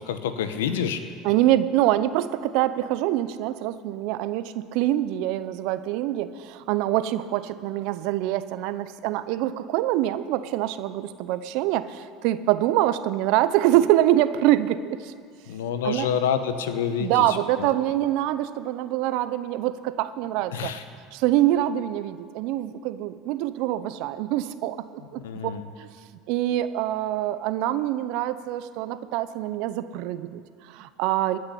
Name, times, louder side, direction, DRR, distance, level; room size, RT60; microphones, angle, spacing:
voice 1, 0.1-1.0 15.5-17.7 20.5-20.8 25.2-25.6, left 8 dB, 85° left, 10 dB, 1.0 m, -28 dB
voice 2, 1.2-15.1 15.8-16.1 17.0-20.7 21.1-24.8 25.1-25.5 25.8-25.9 26.3-31.4, right 14 dB, 70° right, 13 dB, 0.7 m, -25 dB
17.5 x 6.5 x 10.0 m, 2.3 s
hypercardioid pair, 80°, 0 cm